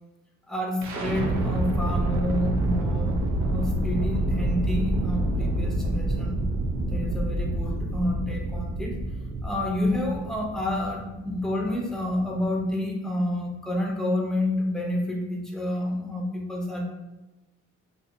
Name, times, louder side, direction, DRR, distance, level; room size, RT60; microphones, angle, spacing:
voice 1, 0.5-6.5 6.9-9.0 9.4-16.8, left 1 dB, ahead, 0 dB, 0.5 m, -29 dB
sound 1, 0.8-12.7, right 1 dB, 65° right, 0.5 m, -28 dB
2.7 x 2.6 x 2.5 m, 1.0 s
cardioid pair, 90°, 30 cm